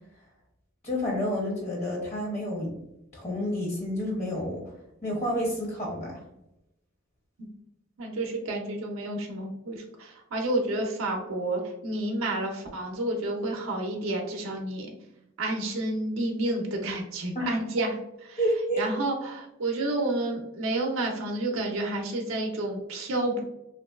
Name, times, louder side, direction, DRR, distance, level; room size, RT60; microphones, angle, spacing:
voice 1, 0.8-2.7 3.1-4.6 5.0-6.2 17.3-17.6 18.4-18.9, equal, 35° left, -2 dB, 0.7 m, -29 dB
voice 2, 8.0-14.9 15.4-18.4 18.8-23.4, right 2 dB, 80° right, 1 dB, 0.5 m, -30 dB
2.9 x 2.5 x 2.3 m, 0.86 s
head